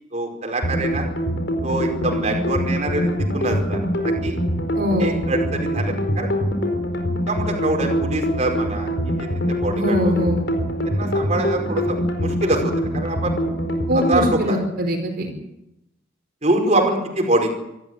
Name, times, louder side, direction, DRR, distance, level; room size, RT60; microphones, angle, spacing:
voice 1, 0.1-1.0 1.6-4.4 5.0-6.3 7.3-8.9 9.2-9.3 9.6-10.1 10.9-13.3 14.1-14.6 16.4-17.5, right 2 dB, 35° right, 1 dB, 5.0 m, -24 dB
sound 1, 0.6-14.3, equal, 65° left, 4.5 m, -24 dB
voice 2, 4.7-5.3 9.7-10.4 13.9-15.3, equal, 55° right, 2 dB, 4.8 m, -22 dB
26.0 x 14.0 x 9.5 m, 0.86 s
head